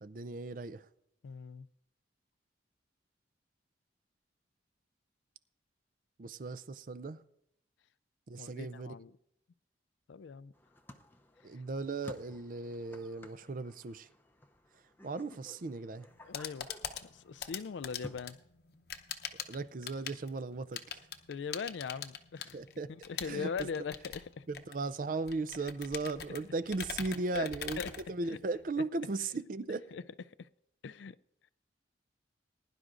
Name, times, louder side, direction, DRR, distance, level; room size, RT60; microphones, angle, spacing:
voice 1, 0.0-0.9 6.2-7.2 8.3-9.0 11.4-14.1 15.0-16.1 19.5-21.1 22.5-22.9 23.2-23.7 24.5-27.8 28.1-29.8, right 3 dB, 45° right, 0.4 m, -37 dB
voice 2, 1.2-1.7 8.4-9.1 10.1-10.5 16.2-16.7 17.0-18.4 21.3-22.6 22.9-24.4 27.3-27.5 27.8-27.9 28.3-28.4 29.9-30.0 30.4-30.5 30.8-31.2, left 5 dB, 75° left, 0.4 m, -40 dB
sound 1, 10.5-18.2, left 1 dB, 10° left, 0.6 m, -54 dB
sound 2, 16.1-28.7, left 7 dB, 55° left, 0.8 m, -44 dB
20.5 x 11.0 x 2.5 m
head